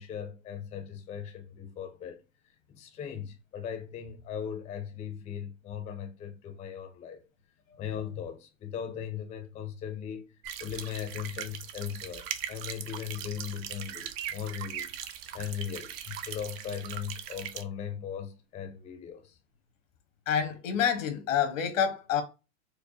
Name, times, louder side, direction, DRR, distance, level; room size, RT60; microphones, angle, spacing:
voice 1, 0.0-2.2 2.7-7.2 7.8-14.9 15.3-19.4, left 8 dB, 15° left, 0.5 m, -38 dB
sound 1, 10.4-17.6, right 10 dB, 50° right, 0.6 m, -40 dB
voice 2, 20.3-22.2, left 8 dB, 90° left, 1.2 m, -27 dB
4.6 x 2.1 x 2.7 m
supercardioid pair, 140°, 38 cm